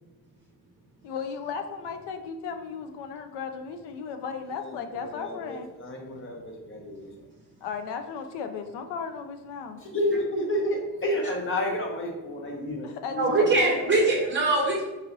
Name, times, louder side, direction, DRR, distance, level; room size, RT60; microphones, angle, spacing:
voice 1, 1.0-5.7 7.6-9.8 12.8-13.8, left 6 dB, 85° left, 7 dB, 0.5 m, -35 dB
voice 2, 4.5-7.1 9.7-14.0, left 1 dB, 30° left, 1 dB, 0.8 m, -31 dB
voice 3, 13.2-14.8, right 2 dB, 30° right, -3 dB, 0.6 m, -22 dB
4.0 x 3.0 x 2.6 m, 1.1 s
cardioid pair, 125°, 40 cm